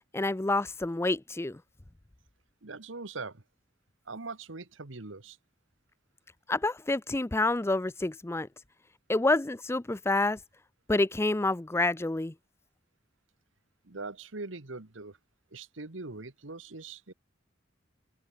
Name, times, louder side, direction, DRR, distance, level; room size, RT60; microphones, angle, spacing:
voice 1, 0.1-1.6 6.5-8.5 9.1-10.4 10.9-12.3, left 2 dB, 15° left, 0.5 m, -28 dB
voice 2, 2.6-3.4 4.0-5.4 13.8-15.2 15.5-17.1, right 3 dB, 90° right, 1.7 m, -41 dB
open air
head